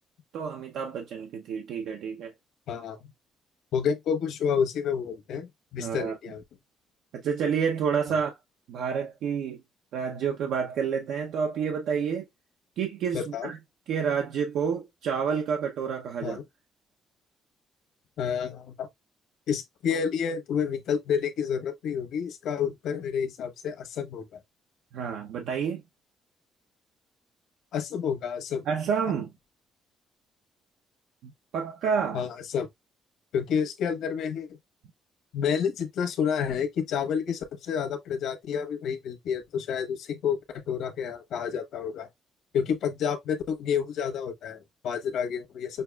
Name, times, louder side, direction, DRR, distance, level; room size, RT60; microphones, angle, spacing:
voice 1, 0.3-2.3 5.8-6.2 7.1-8.4 8.7-9.6 9.9-12.3 12.8-13.6 13.9-16.4 24.9-25.8 28.7-29.3 31.2-32.3, right 6 dB, 80° right, 0.7 m, -29 dB
voice 2, 2.7-3.0 3.7-6.4 13.1-13.5 16.2-16.4 18.2-18.9 19.5-24.4 27.7-28.6 32.1-32.7 33.3-34.5 35.3-40.4 40.7-42.1 42.5-45.8, left 7 dB, 70° left, 1.1 m, -29 dB
6.5 x 2.4 x 2.3 m
cardioid pair, 145°, 0 cm